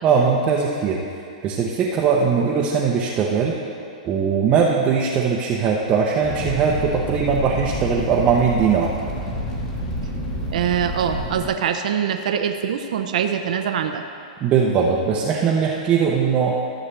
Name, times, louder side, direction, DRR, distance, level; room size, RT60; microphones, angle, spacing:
voice 1, 0.0-1.0 1.4-3.6 4.0-8.9 14.4-16.5, right 6 dB, 25° right, -3 dB, 0.8 m, -20 dB
Fire, 6.2-11.5, equal, 35° left, 2.0 m, -29 dB
voice 2, 10.5-14.0, right 8 dB, 70° right, 5 dB, 0.6 m, -23 dB
14.0 x 7.2 x 3.3 m, 2.4 s
hypercardioid pair, 145°, 4 cm